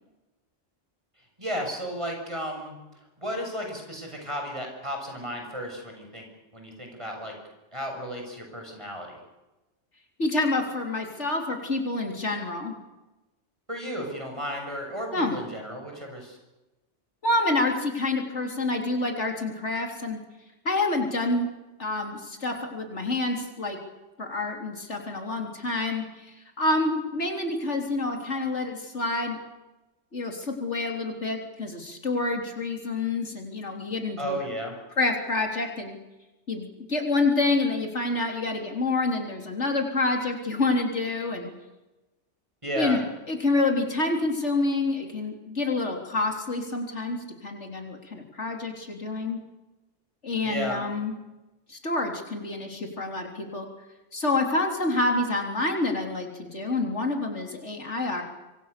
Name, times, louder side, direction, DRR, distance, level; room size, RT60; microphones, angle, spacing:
voice 1, 1.4-2.8 3.2-6.3 6.5-7.4 7.7-9.2 13.7-16.4 34.2-34.7 42.6-43.0 50.4-50.8, equal, 25° right, 2 dB, 7.0 m, -33 dB
voice 2, 10.2-12.7 15.1-15.4 17.2-20.2 20.6-21.5 21.8-23.8 24.2-29.4 30.1-34.4 35.0-36.0 36.5-41.5 42.8-43.0 43.3-49.4 50.2-51.2 51.7-53.7 54.1-58.2, left 2 dB, 70° left, 3 dB, 4.1 m, -27 dB
26.0 x 25.0 x 6.9 m, 1.0 s
omnidirectional pair, 1.2 m